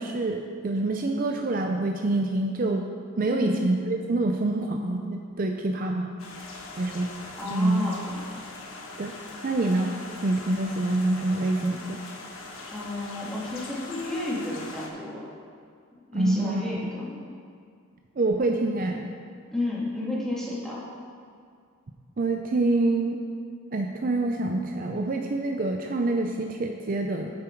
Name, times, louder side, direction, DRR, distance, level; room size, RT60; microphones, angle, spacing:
voice 1, 0.0-2.9 3.2-6.1 6.8-7.1 7.5-7.8 9.0-9.1 9.4-9.9 10.2-12.0 16.1-16.8 18.2-19.1 22.2-23.2 23.7-27.3, right 2 dB, 45° right, 3 dB, 0.5 m, -26 dB
voice 2, 3.3-3.6 7.4-8.2 12.7-15.3 16.1-17.2 19.5-20.8, left 2 dB, 5° left, -7 dB, 2.0 m, -32 dB
sound 1, 6.2-14.9, left 3 dB, 90° left, 1.3 m, -41 dB
9.6 x 7.6 x 4.5 m, 2.3 s
head